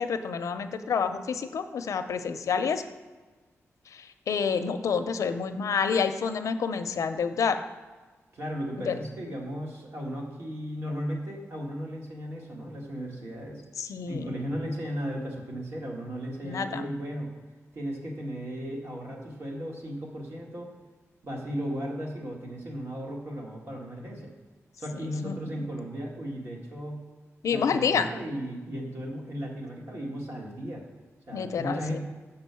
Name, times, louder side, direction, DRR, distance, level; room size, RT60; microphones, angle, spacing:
voice 1, 0.0-2.8 3.9-7.6 8.9-9.0 13.8-14.3 16.4-16.9 24.9-25.6 27.4-28.1 31.3-32.0, left 6 dB, 90° left, 9 dB, 0.5 m, -28 dB
voice 2, 8.3-13.6 14.0-17.3 17.7-20.7 21.2-24.3 24.8-27.0 27.5-30.8 31.3-32.0, equal, 50° right, -2 dB, 1.8 m, -35 dB
6.8 x 4.5 x 6.8 m, 1.3 s
wide cardioid pair, 155°, 5 cm